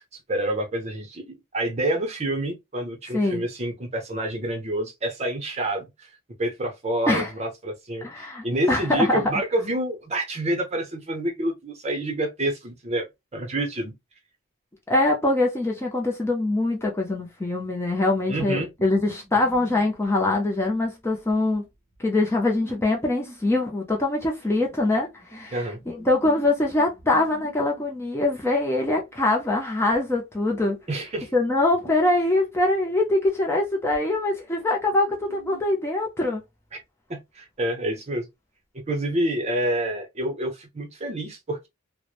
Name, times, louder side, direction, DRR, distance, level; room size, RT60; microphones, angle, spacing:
voice 1, 0.3-6.1 6.4-13.1 13.3-13.9 18.3-18.7 25.5-25.8 30.9-31.3 36.7-36.8 37.1-38.3 38.9-41.7, right 1 dB, 30° right, 0.6 m, -28 dB
voice 2, 3.1-3.4 7.1-7.3 8.0-9.2 14.9-21.6 22.0-30.8 31.3-36.4, left 2 dB, 10° left, 0.4 m, -23 dB
sound 1, 18.8-20.1 20.4-20.5 20.8-20.9 21.3-24.8 25.2-27.9 28.3-29.1 29.9-30.0 30.5-35.6, right 3 dB, 40° left, 1.2 m, -48 dB
3.0 x 2.0 x 2.3 m
head